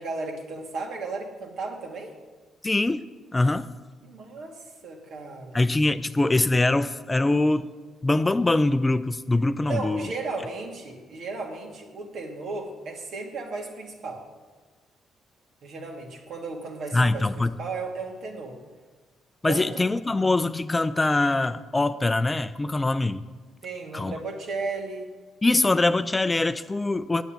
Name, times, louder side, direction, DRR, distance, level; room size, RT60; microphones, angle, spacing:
voice 1, 0.0-2.1 4.0-5.6 9.6-14.2 15.6-18.6 19.5-19.7 23.6-25.1, right 3 dB, 65° right, 1 dB, 2.2 m, -35 dB
voice 2, 2.6-3.0 3.3-3.7 5.5-7.7 8.0-10.1 16.9-17.5 19.4-23.2 23.9-24.1 25.4-27.2, left 2 dB, 20° left, 13 dB, 0.4 m, -23 dB
8.9 x 8.2 x 9.0 m, 1.4 s
cardioid pair, 90°, 0 cm